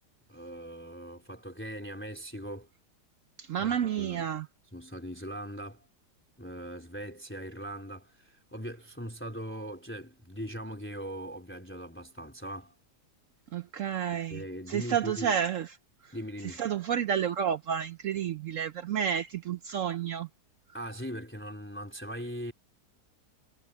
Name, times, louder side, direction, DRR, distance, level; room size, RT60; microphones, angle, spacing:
voice 1, 0.3-2.7 3.6-4.3 4.7-5.9 6.4-12.7 14.1-15.4 16.1-16.6 20.7-22.5, equal, 5° left, 3.6 m, -40 dB
voice 2, 3.4-4.5 13.5-14.4 14.7-15.7 16.4-20.3, right 8 dB, 65° right, 0.8 m, -30 dB
omnidirectional pair, 1.8 m